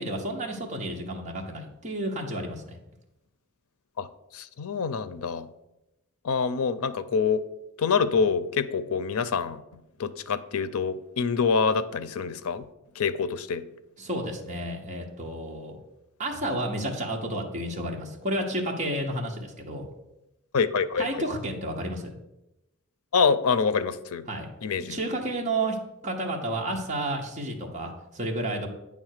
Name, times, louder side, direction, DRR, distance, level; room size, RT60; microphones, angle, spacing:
voice 1, 0.0-2.8 14.0-15.8 16.2-19.9 21.0-22.1 24.3-24.5 24.8-25.8 26.0-28.7, right 1 dB, 35° right, 0 dB, 1.0 m, -31 dB
voice 2, 4.3-5.5 6.2-7.4 7.8-9.6 10.0-12.6 13.0-13.6 20.5-21.2 23.1-24.3 24.6-25.0, left 5 dB, 80° left, 13 dB, 0.5 m, -26 dB
8.9 x 3.6 x 6.4 m, 0.93 s
head